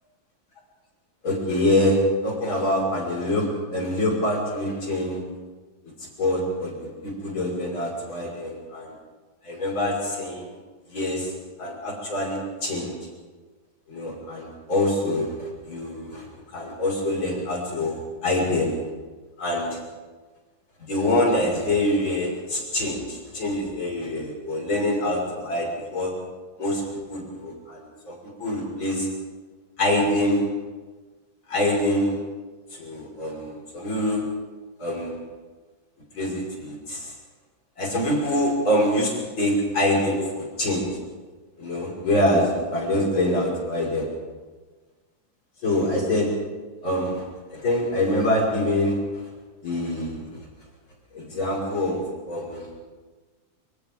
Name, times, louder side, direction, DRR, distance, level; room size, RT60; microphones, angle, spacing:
voice 1, 1.2-3.5 3.7-5.2 6.2-8.9 9.4-10.5 10.9-11.3 11.6-13.0 13.9-16.3 16.5-18.7 19.4-19.8 20.8-26.1 26.6-26.8 27.1-28.1 28.4-29.1 29.8-30.4 31.5-32.2 32.7-34.2 34.8-35.1 36.1-37.1 37.8-40.9 41.6-44.1 45.6-46.3 46.8-47.2 47.5-49.0 49.6-50.2 51.1-52.7, left 1 dB, 80° left, -3 dB, 6.5 m, -25 dB
27.5 x 25.5 x 3.8 m, 1.3 s
omnidirectional pair, 2.1 m